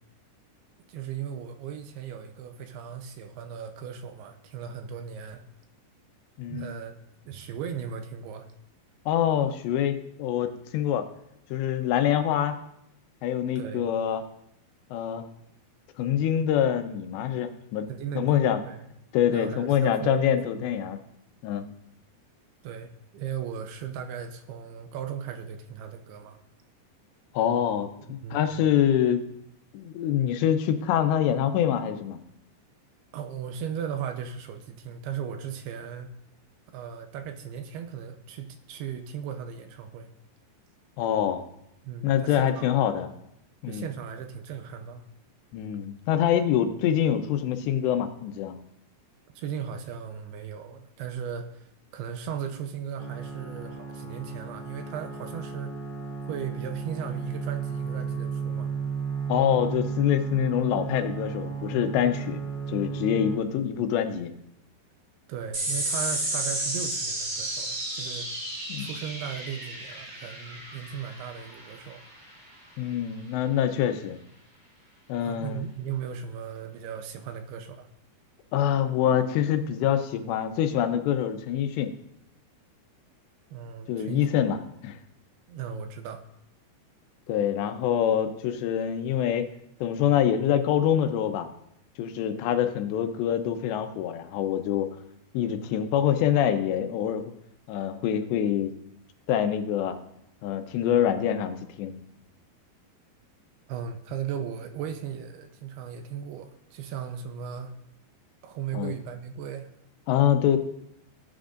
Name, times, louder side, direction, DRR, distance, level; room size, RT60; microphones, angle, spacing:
voice 1, 0.9-5.4 6.5-7.0 7.3-8.5 13.6-13.8 17.9-18.9 19.3-20.7 22.6-26.4 28.0-28.4 33.1-36.1 36.7-40.1 41.8-43.0 43.7-45.0 49.4-55.8 56.3-58.7 65.3-68.3 68.8-72.0 75.2-77.9 83.5-84.3 85.5-86.2 103.7-107.8 108.4-109.7, right 8 dB, 80° right, 7 dB, 2.6 m, -37 dB
voice 2, 6.4-6.7 9.1-11.1 11.5-12.5 13.2-14.2 14.9-15.3 16.0-17.9 18.2-18.6 19.1-21.0 21.4-21.7 27.3-29.3 29.7-32.2 41.0-41.4 42.0-43.1 43.6-43.9 45.5-48.6 59.3-62.4 62.7-64.3 68.7-68.9 72.8-74.2 75.1-75.6 78.5-81.9 83.9-85.0 87.3-89.5 89.8-91.5 92.0-94.9 95.3-97.3 97.7-98.7 99.3-100.0 100.4-102.0 108.7-109.0 110.1-110.6, left 10 dB, 85° left, 8 dB, 3.1 m, -25 dB
sound 1, 53.0-63.4, right 6 dB, 55° left, 1.5 m, -34 dB
sound 2, 65.5-72.3, right 1 dB, 30° right, 3.5 m, -32 dB
18.0 x 8.9 x 2.6 m, 0.79 s
omnidirectional pair, 4.9 m